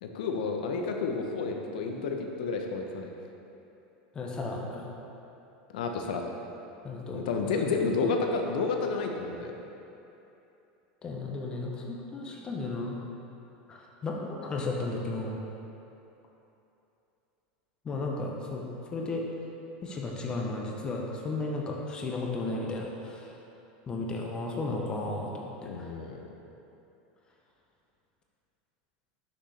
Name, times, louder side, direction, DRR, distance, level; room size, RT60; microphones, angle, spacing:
voice 1, 0.0-3.1 5.7-6.2 7.1-9.5 25.6-26.2, left 4 dB, 90° left, 3 dB, 0.7 m, -30 dB
voice 2, 4.1-4.9 6.8-7.5 8.0-8.2 11.0-13.0 13.7-15.4 17.8-18.6 18.9-19.3 19.8-23.3 23.9-25.9, left 2 dB, 20° left, -1 dB, 0.6 m, -34 dB
6.2 x 6.0 x 3.2 m, 2.9 s
supercardioid pair, 155°, 4 cm